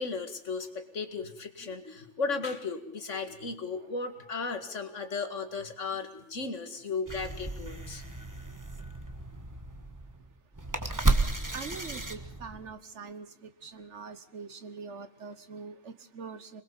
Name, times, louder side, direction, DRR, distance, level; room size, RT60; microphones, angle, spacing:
voice 1, 0.0-8.0, left 4 dB, 75° left, 8 dB, 2.3 m, -35 dB
sound 1, 7.1-12.7, right 2 dB, 15° right, 1.6 m, -32 dB
voice 2, 11.5-16.6, right 5 dB, 70° right, 12 dB, 1.6 m, -43 dB
26.5 x 20.5 x 7.1 m, 0.63 s
omnidirectional pair, 1.3 m